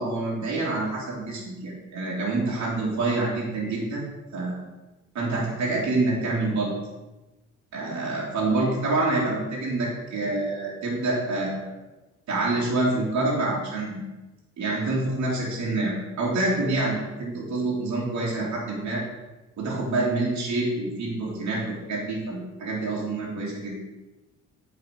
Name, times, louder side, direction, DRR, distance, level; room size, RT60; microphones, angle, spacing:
voice 1, 0.0-4.0 4.3-4.6 5.1-6.7 7.7-11.7 12.3-14.0 14.6-19.0 19.6-23.8, right 2 dB, 65° right, -5 dB, 2.7 m, -27 dB
8.7 x 5.0 x 5.1 m, 1.1 s
cardioid pair, 90°, 30 cm